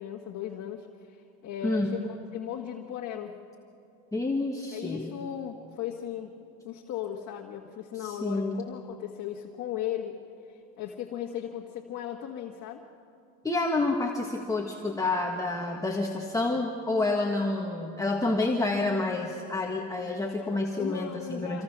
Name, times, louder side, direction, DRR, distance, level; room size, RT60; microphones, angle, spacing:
voice 1, 0.0-3.4 4.7-6.3 6.6-10.1 10.5-12.8 20.8-21.6, left 10 dB, 45° left, 0 dB, 1.7 m, -37 dB
voice 2, 1.6-2.0 4.1-5.1 7.9-8.7 13.4-21.6, left 2 dB, 10° left, 0 dB, 1.6 m, -29 dB
27.0 x 23.5 x 6.2 m, 2.8 s
supercardioid pair, 120°, 41 cm